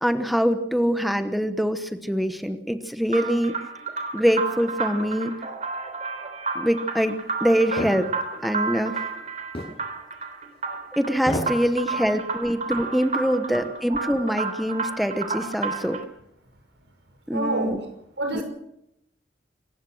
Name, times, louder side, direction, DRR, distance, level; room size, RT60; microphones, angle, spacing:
voice 1, 0.0-3.5 4.1-5.3 6.5-7.1 7.4-8.1 8.4-9.1 11.0-16.0 17.3-17.8 18.3-18.4, equal, ahead, 1.1 m, -24 dB
sound 1, 3.1-16.0, right 4 dB, 40° right, 3.3 m, -31 dB
sound 2, 7.8-8.0 9.5-9.8 11.2-11.6 12.0-12.1, left 1 dB, 30° left, 6.8 m, -29 dB
voice 2, 17.3-17.9 18.2-18.4, right 2 dB, 75° right, 5.8 m, -27 dB
26.5 x 16.0 x 6.4 m
head